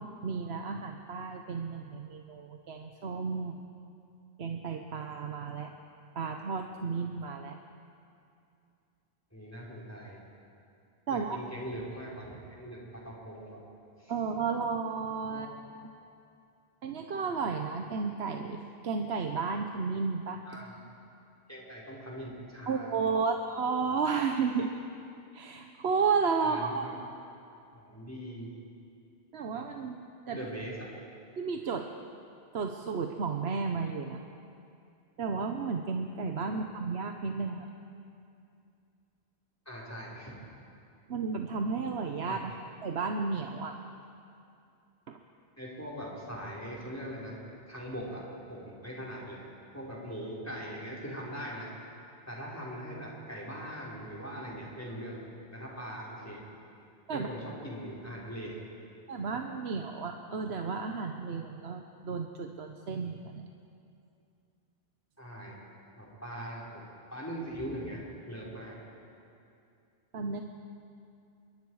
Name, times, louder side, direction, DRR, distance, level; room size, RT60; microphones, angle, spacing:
voice 1, 0.0-3.6 4.4-5.7 6.1-7.6 11.1-11.4 14.1-15.5 16.8-20.4 22.7-24.7 25.3-26.8 29.3-30.0 30.3-30.4 31.4-31.9 32.5-34.2 35.2-37.7 41.1-42.5 42.8-43.8 45.1-45.2 57.1-57.3 59.1-63.4 70.1-70.4, right 5 dB, 75° right, 4 dB, 1.2 m, -33 dB
voice 2, 9.3-10.2 11.1-13.6 14.0-14.1 15.3-15.4 20.5-20.9 21.5-23.0 26.4-26.9 27.7-28.5 30.3-30.7 36.5-36.6 39.6-40.4 42.3-42.6 45.6-47.4 47.7-48.2 48.5-49.4 49.7-51.7 52.3-55.2 55.5-56.4 57.1-58.6 65.2-68.8, equal, 15° left, -5 dB, 4.6 m, -41 dB
26.0 x 23.0 x 4.8 m, 2.6 s
omnidirectional pair, 1.1 m